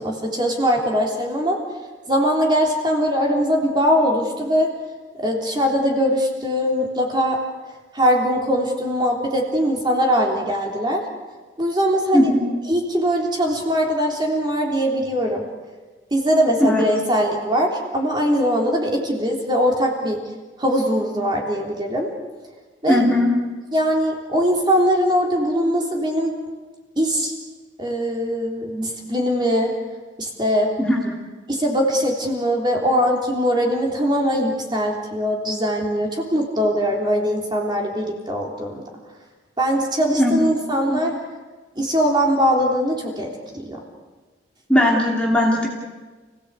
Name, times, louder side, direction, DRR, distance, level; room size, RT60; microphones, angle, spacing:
voice 1, 0.0-1.6 2.1-4.7 5.1-7.4 7.9-11.0 11.6-12.3 12.7-15.4 16.1-20.2 20.6-22.1 22.8-23.0 23.7-26.3 27.0-27.3 27.8-29.7 30.2-30.7 31.5-38.8 39.6-41.2 41.8-43.3 43.7-43.8, equal, 20° right, 0 dB, 3.6 m, -21 dB
voice 2, 12.1-12.5 16.6-16.8 22.9-23.3 30.8-31.1 40.1-40.4 40.9-41.0 44.7-45.7, left 1 dB, 5° left, -3 dB, 2.9 m, -18 dB
30.0 x 17.5 x 8.3 m, 1.3 s
head